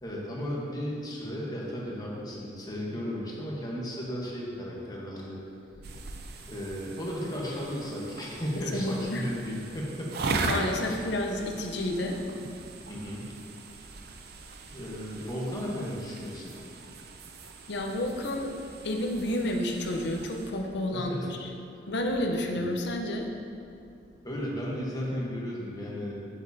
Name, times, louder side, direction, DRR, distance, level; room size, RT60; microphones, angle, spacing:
voice 1, 0.0-5.4 6.5-10.4 10.8-10.9 12.9-13.3 14.7-16.5 20.9-21.3 22.5-22.7 24.2-26.1, equal, 20° left, -4 dB, 1.2 m, -35 dB
sound 1, 5.8-20.5, right 3 dB, 60° right, 0.6 m, -39 dB
voice 2, 8.5-9.3 10.5-12.2 17.7-18.6 18.8-21.5 21.9-23.3, left 1 dB, 65° left, 3 dB, 0.8 m, -30 dB
8.7 x 7.2 x 2.8 m, 2.6 s
head